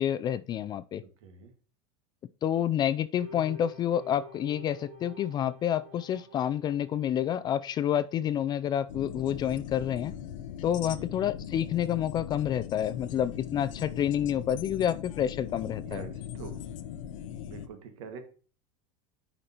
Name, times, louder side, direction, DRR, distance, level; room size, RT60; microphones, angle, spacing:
voice 1, 0.0-1.0 2.4-10.1 10.6-16.0, left 10 dB, 25° left, 0.4 m, -29 dB
sound 1, 3.2-7.8, right 2 dB, 35° right, 3.7 m, -49 dB
sound 2, 8.9-17.7, left 9 dB, 85° left, 0.7 m, -40 dB
voice 2, 10.8-11.2 15.8-16.5 17.5-18.2, right 6 dB, 75° right, 1.8 m, -44 dB
10.0 x 5.1 x 2.9 m
supercardioid pair, 145°, 16 cm